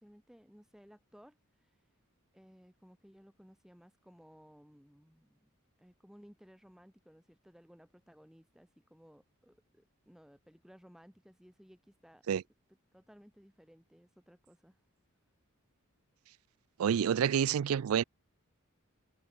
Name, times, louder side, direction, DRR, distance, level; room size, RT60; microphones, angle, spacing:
voice 1, 0.0-1.8 2.3-12.3 12.9-14.8, equal, ahead, 1.6 m, -59 dB
voice 2, 16.8-18.0, right 8 dB, 75° right, 0.4 m, -28 dB
head